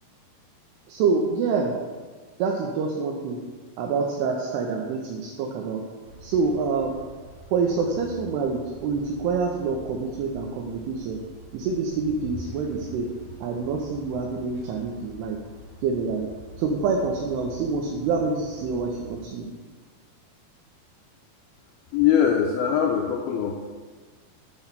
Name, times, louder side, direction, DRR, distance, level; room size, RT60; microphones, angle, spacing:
voice 1, 0.9-1.7 2.4-3.4 3.8-5.8 6.2-6.9 7.5-11.2 11.5-13.1 13.4-15.4 15.8-16.3 16.6-19.5, right 4 dB, 80° right, 1 dB, 2.6 m, -26 dB
sound 1, 6.0-19.2, equal, 45° right, 1.7 m, -45 dB
voice 2, 21.9-23.6, left 8 dB, 85° left, 1 dB, 2.2 m, -22 dB
7.8 x 4.4 x 5.7 m, 1.4 s
omnidirectional pair, 4.9 m